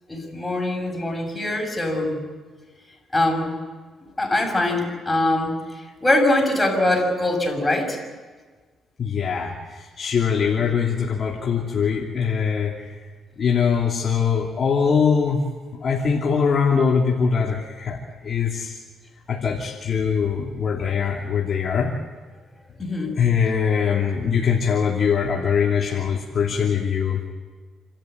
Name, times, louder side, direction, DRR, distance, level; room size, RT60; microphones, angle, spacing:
voice 1, 0.1-2.2 3.1-3.5 4.2-5.5 6.0-8.0 22.8-23.2, left 1 dB, 15° left, 1 dB, 6.8 m, -22 dB
voice 2, 9.0-12.7 13.4-15.4 15.8-18.0 18.2-18.8 19.3-21.9 23.2-27.2, left 6 dB, 50° left, -2 dB, 2.8 m, -22 dB
28.5 x 13.5 x 9.4 m, 1.4 s
cardioid pair, 90°, 0 cm